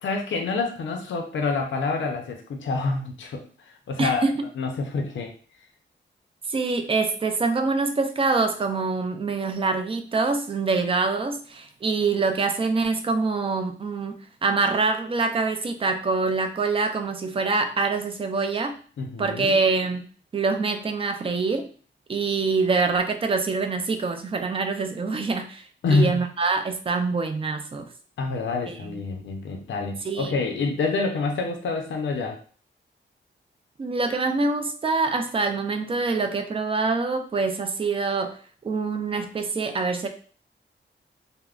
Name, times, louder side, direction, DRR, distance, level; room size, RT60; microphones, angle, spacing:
voice 1, 0.0-3.4 3.9-4.3 4.6-5.3 19.0-19.5 25.8-26.2 28.2-32.4, left 3 dB, 70° left, 3 dB, 0.5 m, -27 dB
voice 2, 4.0-4.5 6.5-18.8 19.2-20.0 20.3-21.7 22.1-27.9 28.7-29.0 30.0-30.3 33.8-38.4 38.6-40.1, right 4 dB, 30° right, 6 dB, 0.3 m, -25 dB
3.5 x 2.0 x 2.3 m, 0.42 s
wide cardioid pair, 130°, 20 cm